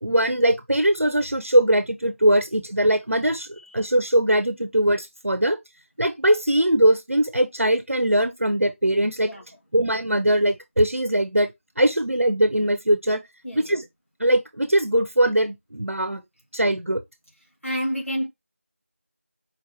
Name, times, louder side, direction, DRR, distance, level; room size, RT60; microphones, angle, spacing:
voice 1, 0.0-5.6 6.0-9.3 9.7-11.5 11.8-13.2 13.5-13.9 14.2-16.2 16.5-17.0, right 1 dB, 80° right, 0.8 m, -21 dB
voice 2, 17.6-18.3, equal, 85° left, 1.9 m, -29 dB
4.4 x 3.0 x 3.2 m
figure-of-eight pair, 180°, 7 cm